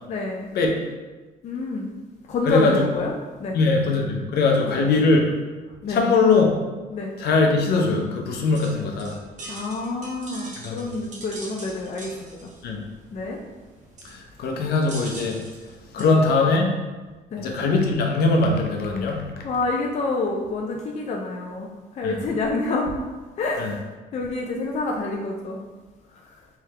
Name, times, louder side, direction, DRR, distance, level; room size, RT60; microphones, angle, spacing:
voice 1, 0.1-0.5 1.4-1.9 2.2-3.1 3.4-3.6 4.6-4.8 5.8-6.1 6.9-7.1 9.5-12.5 13.1-13.4 15.9-16.1 17.3-17.5 19.4-22.9 23.4-23.7 24.1-25.6 26.1-26.4, left 3 dB, 40° left, 0 dB, 0.5 m, -28 dB
voice 2, 3.5-5.2 5.9-6.5 7.2-9.1 10.6-10.8 12.6-12.8 14.0-15.4 15.9-16.7 17.4-19.4 22.0-22.1 23.6-23.7, left 3 dB, 70° left, 1 dB, 0.8 m, -21 dB
sound 1, 8.4-16.0, right 2 dB, 45° right, 1.0 m, -42 dB
3.5 x 3.4 x 3.2 m, 1.2 s
cardioid pair, 110°, 17 cm